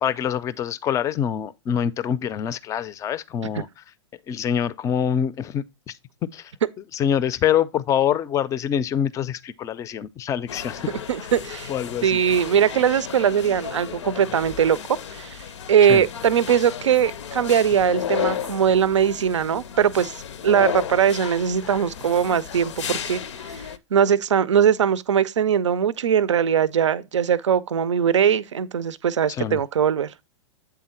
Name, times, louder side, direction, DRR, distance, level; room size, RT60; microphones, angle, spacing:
voice 1, 0.0-3.7 4.3-5.9 6.3-6.5 6.9-10.8 11.2-11.3 11.7-12.2 15.8-16.0 29.3-29.6, left 9 dB, 20° left, 0.4 m, -25 dB
sound 1, 10.5-23.8, left 9 dB, 75° left, 0.6 m, -33 dB
voice 2, 11.1-11.7 12.0-15.4 15.7-20.1 20.4-23.2 23.5-23.6 23.9-30.1, right 8 dB, 85° right, 0.5 m, -20 dB
8.0 x 3.7 x 4.3 m
hypercardioid pair, 110°, 15 cm